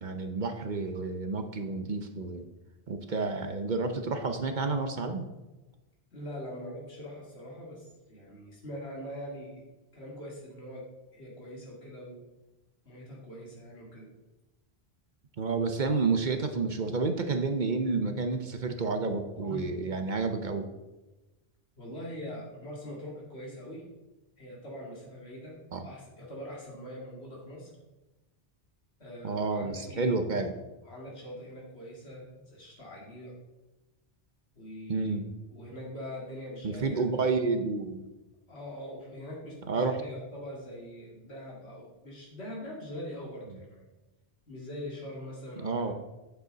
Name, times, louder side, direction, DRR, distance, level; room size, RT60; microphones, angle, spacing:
voice 1, 0.0-2.5 2.9-5.3 15.4-20.7 25.7-25.9 29.2-30.6 34.9-35.3 36.6-38.1 39.7-40.0 45.6-45.9, right 4 dB, 50° right, 7 dB, 0.8 m, -30 dB
voice 2, 6.1-9.6 9.9-10.8 11.1-12.2 12.8-14.1 18.8-18.9 19.5-19.7 21.8-23.9 24.4-25.6 25.8-27.7 29.0-30.1 30.8-33.3 34.6-35.2 35.5-37.3 38.5-43.8 44.5-45.9, equal, 80° left, -4 dB, 2.9 m, -43 dB
9.0 x 7.2 x 4.0 m, 1.1 s
omnidirectional pair, 1.1 m